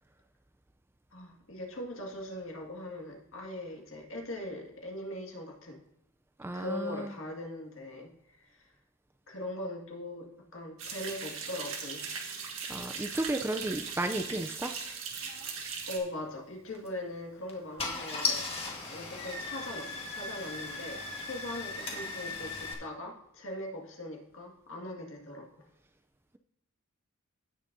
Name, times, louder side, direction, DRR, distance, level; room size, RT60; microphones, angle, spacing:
voice 1, 1.1-5.8 6.5-8.7 9.3-10.3 10.5-12.1 15.9-18.4 18.9-25.7, left 1 dB, 65° left, 0 dB, 2.0 m, -40 dB
voice 2, 6.4-7.1 12.7-14.7, right 1 dB, 10° right, 7 dB, 0.4 m, -33 dB
sound 1, 10.8-16.0, right 5 dB, 70° right, 1.7 m, -39 dB
Car / Engine starting, 16.7-16.9 17.5-17.6 17.8-22.7, left 3 dB, 25° left, 1.5 m, -36 dB
17.0 x 6.2 x 2.7 m, 0.82 s
head